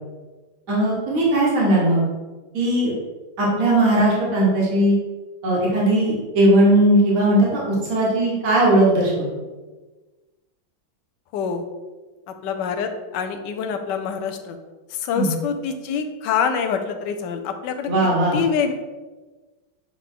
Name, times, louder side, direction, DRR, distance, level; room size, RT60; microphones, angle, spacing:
voice 1, 0.7-2.0 2.5-2.9 3.4-4.9 5.4-9.3 15.2-15.3 17.9-18.4, right 1 dB, 45° right, -5 dB, 2.0 m, -18 dB
voice 2, 11.3-11.6 12.4-14.6 14.9-17.9 18.3-18.7, left 6 dB, 70° left, 6 dB, 1.2 m, -25 dB
8.2 x 3.6 x 3.7 m, 1.3 s
omnidirectional pair, 2.1 m